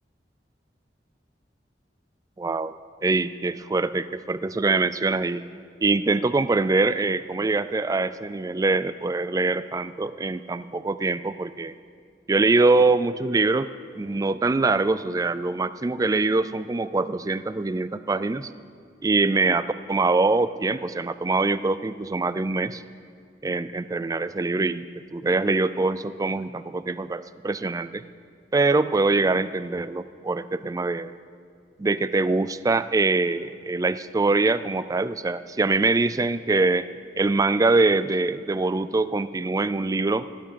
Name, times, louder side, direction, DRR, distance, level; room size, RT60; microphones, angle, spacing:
voice 1, 2.4-5.4 5.8-11.8 12.3-13.7 14.0-18.5 19.0-22.8 23.4-24.9 25.1-28.0 28.5-31.1 31.8-36.9 37.2-40.3, right 3 dB, 20° right, 14 dB, 0.3 m, -23 dB
17.5 x 7.2 x 7.5 m, 2.3 s
head